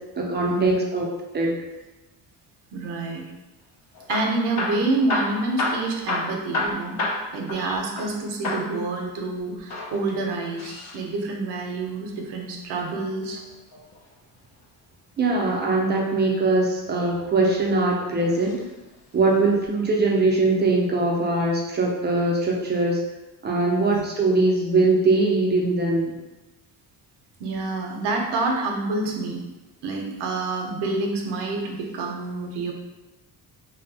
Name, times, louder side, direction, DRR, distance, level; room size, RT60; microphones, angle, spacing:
voice 1, 0.2-1.1 1.3-1.6 7.5-7.8 15.2-18.6 19.1-23.0 23.4-26.2, right 2 dB, 25° right, -1 dB, 0.4 m, -21 dB
voice 2, 2.7-3.3 4.1-7.0 7.3-13.4 23.7-24.0 27.4-29.4 29.8-32.7, right 3 dB, 90° right, 1 dB, 0.6 m, -27 dB
Hammer / Drill, 3.9-8.2 8.4-8.8 9.6-11.0 12.8-14.0 15.7-16.2 16.9-17.7 18.4-18.6 18.9-19.0 19.7-19.8, left 2 dB, 45° left, 0.4 m, -30 dB
2.7 x 2.1 x 2.6 m, 1.1 s
cardioid pair, 115°, 40 cm